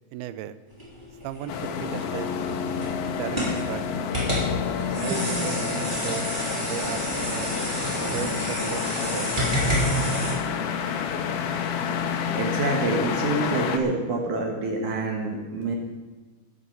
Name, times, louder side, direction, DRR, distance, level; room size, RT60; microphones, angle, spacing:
voice 1, 0.1-0.6 1.2-2.3 3.2-3.8 4.9-6.3 6.6-7.5 8.0-9.3, right 12 dB, 80° right, 13 dB, 2.3 m, -35 dB
sound 1, 0.7-10.3, equal, 10° right, 2.8 m, -29 dB
sound 2, 1.5-13.8, left 7 dB, 70° left, 2.6 m, -29 dB
voice 2, 12.3-15.8, right 3 dB, 60° right, 2 dB, 2.3 m, -27 dB
11.5 x 9.6 x 7.8 m, 1.3 s
omnidirectional pair, 5.0 m